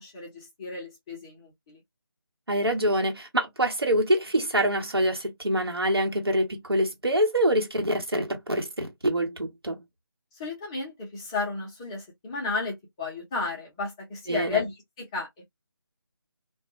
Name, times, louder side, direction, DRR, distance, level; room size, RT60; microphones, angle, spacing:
voice 1, 0.0-1.8 10.4-15.3, left 4 dB, 10° left, 0.6 m, -33 dB
voice 2, 2.5-9.8 14.3-14.6, right 1 dB, 80° right, 1.2 m, -25 dB
2.3 x 2.2 x 2.7 m
figure-of-eight pair, 155°, 13 cm